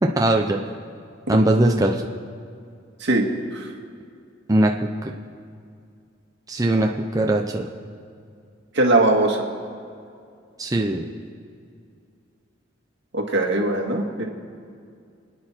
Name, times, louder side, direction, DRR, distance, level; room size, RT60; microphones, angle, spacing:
voice 1, 0.0-0.6 1.3-2.1 4.5-5.1 6.5-7.7 10.6-11.0, right 1 dB, 20° right, 1 dB, 0.7 m, -20 dB
voice 2, 3.0-3.7 8.7-9.5 13.1-14.2, right 2 dB, 65° right, 1 dB, 2.0 m, -21 dB
29.0 x 9.8 x 4.4 m, 2.4 s
head